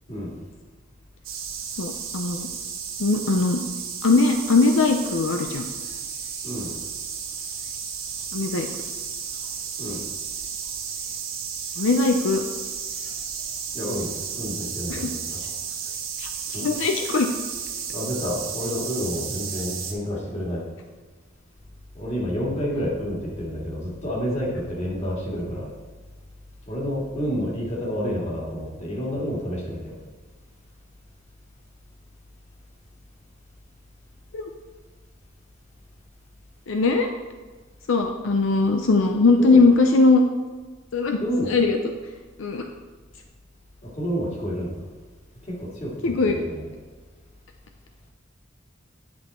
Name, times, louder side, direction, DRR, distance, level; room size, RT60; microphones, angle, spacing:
sound 1, 1.2-19.9, right 6 dB, 90° right, 1.3 m, -33 dB
voice 1, 1.8-2.5 3.0-3.6 4.0-5.7 8.3-8.7 11.8-12.4 14.9-15.1 16.2-17.3 34.3-34.4 36.7-37.1 37.9-40.2 40.9-41.9 42.4-42.7 46.0-46.4, left 3 dB, 75° left, 4 dB, 0.6 m, -20 dB
voice 2, 6.4-6.8 9.8-10.0 13.7-15.5 16.5-16.7 17.9-20.6 21.9-25.7 26.7-30.0 39.4-39.7 41.2-41.6 43.8-44.8 45.5-46.7, equal, 35° left, -4 dB, 2.4 m, -29 dB
10.5 x 5.5 x 4.3 m, 1.4 s
head